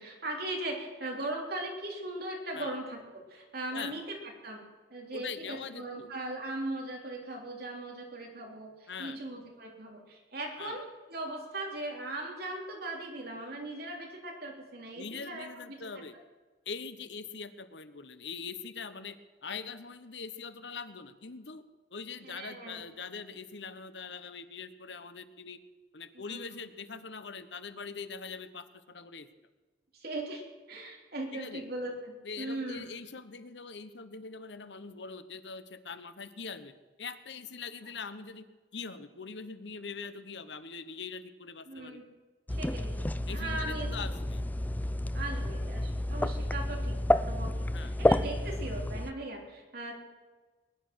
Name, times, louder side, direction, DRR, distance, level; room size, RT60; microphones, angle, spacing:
voice 1, 0.0-4.6 4.9-16.0 22.2-22.8 26.1-26.4 29.9-32.8 41.7-42.1 42.5-44.1 45.1-49.9, right 2 dB, 60° right, 0 dB, 3.7 m, -39 dB
voice 2, 5.1-6.1 8.9-9.2 10.6-10.8 14.9-16.1 16.7-21.6 21.9-25.6 25.9-29.3 31.3-31.7 32.2-36.7 37.0-38.4 38.7-42.0 43.3-44.4 47.7-48.0, left 5 dB, 80° left, 12 dB, 1.1 m, -42 dB
sound 1, 42.5-49.1, left 1 dB, 10° left, 0.4 m, -30 dB
21.5 x 10.5 x 6.3 m, 1.3 s
head